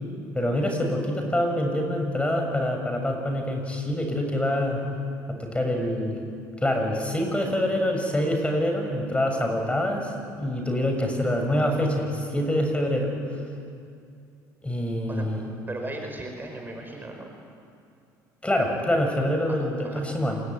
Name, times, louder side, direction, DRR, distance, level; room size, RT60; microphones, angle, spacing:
voice 1, 0.3-4.8 5.3-6.2 6.6-13.1 14.6-15.4 18.4-20.4, left 1 dB, 15° left, 3 dB, 7.0 m, -25 dB
voice 2, 15.1-17.3 19.5-19.6 19.8-20.1, right 2 dB, 20° right, 3 dB, 5.2 m, -37 dB
27.5 x 21.5 x 9.6 m, 2.4 s
hypercardioid pair, 70°, 9 cm